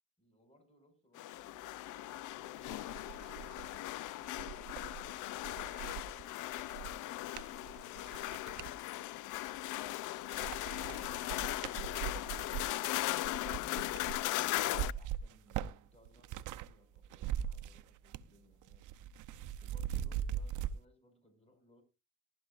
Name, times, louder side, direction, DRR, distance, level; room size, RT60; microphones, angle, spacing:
voice 1, 0.2-3.4 14.6-19.1 19.6-21.8, equal, 20° left, 6 dB, 5.7 m, -67 dB
sound 1, 1.1-14.9, left 17 dB, 90° left, 0.5 m, -38 dB
sound 2, 2.1-2.2 2.6-8.8 9.3-9.9 10.2-16.7 17.0-18.4 18.6-20.7, right 10 dB, 85° right, 0.7 m, -42 dB
18.5 x 12.0 x 2.5 m, 0.28 s
cardioid pair, 90°, 30 cm